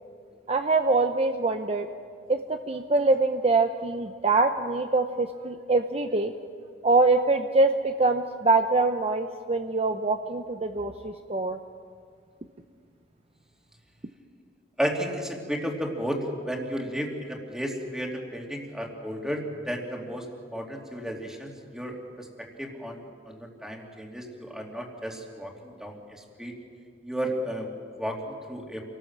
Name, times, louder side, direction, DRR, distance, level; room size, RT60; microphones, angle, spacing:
voice 1, 0.5-1.9 2.3-6.3 6.8-11.6, right 3 dB, 35° right, 6 dB, 0.8 m, -24 dB
voice 2, 14.8-16.2 16.4-26.5 27.0-27.7 28.0-28.8, equal, 5° right, 0 dB, 2.9 m, -33 dB
27.5 x 18.5 x 7.5 m, 2.1 s
head